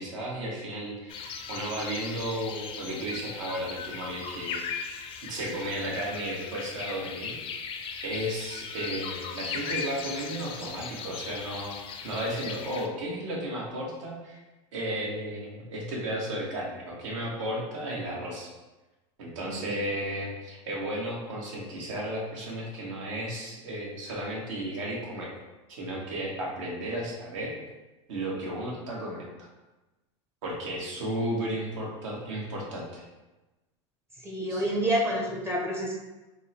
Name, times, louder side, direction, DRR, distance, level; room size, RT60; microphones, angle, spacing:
voice 1, 0.0-4.9 5.2-7.7 8.0-11.8 12.0-14.4 14.7-18.5 19.2-25.3 25.8-27.5 28.1-29.5 30.4-33.0 34.5-34.6, right 1 dB, 80° right, -3 dB, 1.3 m, -34 dB
sound 1, 1.1-12.9, left 6 dB, 35° left, 0.4 m, -38 dB
voice 2, 34.2-35.9, equal, 15° right, -1 dB, 0.6 m, -28 dB
3.6 x 2.1 x 4.1 m, 1.1 s
supercardioid pair, 130°, 16 cm